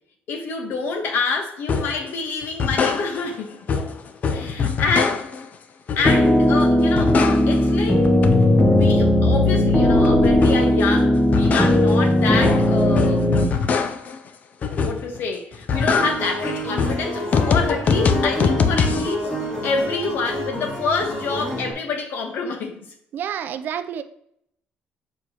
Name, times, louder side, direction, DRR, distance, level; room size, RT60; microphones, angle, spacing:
voice 1, 0.3-3.6 4.3-5.2 6.0-7.2 7.5-8.1 8.6-13.8 14.8-19.3 19.6-22.8, left 4 dB, 70° left, 1.2 m, -27 dB
sound 1, 1.7-2.0 2.4-3.4 3.7-5.5 5.9-6.5 6.8-7.8 8.0-10.8 11.1-14.2 14.6-15.2 15.5-19.1, left 5 dB, 45° left, 0.5 m, -23 dB
sound 2, 6.0-13.4, equal, 5° left, 0.8 m, -18 dB
sound 3, 15.7-21.7, right 1 dB, 25° left, 2.1 m, -29 dB
voice 2, 23.1-24.0, right 9 dB, 60° right, 0.5 m, -29 dB
6.9 x 4.7 x 2.9 m
cardioid pair, 140°, 4 cm